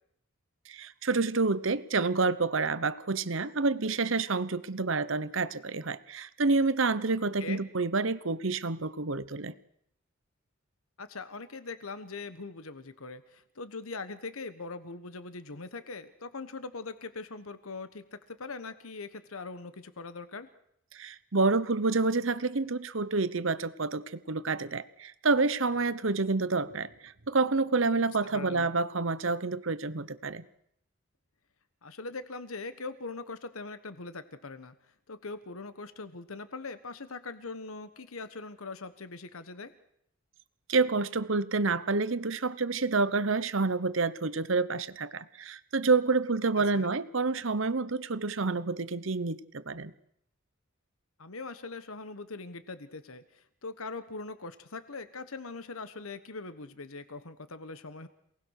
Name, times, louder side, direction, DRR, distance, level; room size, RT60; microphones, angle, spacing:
voice 1, 0.7-9.5 20.9-30.4 40.7-49.9, right 3 dB, 60° right, 15 dB, 1.0 m, -28 dB
voice 2, 11.0-20.5 28.3-28.7 31.8-34.7 35.1-39.7 46.7-46.9 51.2-58.1, left 3 dB, 80° left, 11 dB, 1.3 m, -41 dB
28.0 x 19.0 x 6.6 m, 0.72 s
head